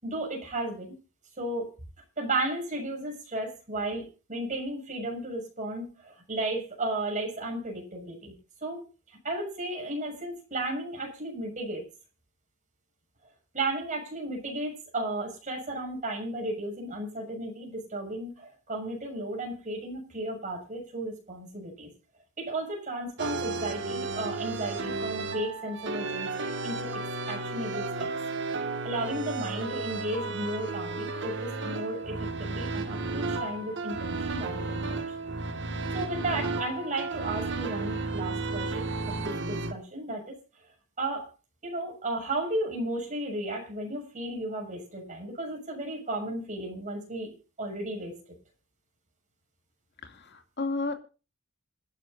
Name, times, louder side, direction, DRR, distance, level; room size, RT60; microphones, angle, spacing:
voice 1, 0.0-0.9 1.4-1.7 2.2-8.4 8.6-11.8 13.5-21.9 22.4-26.9 27.3-28.1 28.8-35.0 35.9-38.8 39.1-40.4 41.0-41.3 41.6-47.3 47.6-48.2, right 1 dB, 40° right, 1 dB, 6.9 m, -34 dB
sound 1, 23.2-39.7, right 3 dB, 60° right, 2.0 m, -33 dB
voice 2, 50.0-50.9, left 3 dB, 55° left, 5 dB, 2.5 m, -32 dB
27.5 x 11.0 x 2.7 m, 0.33 s
head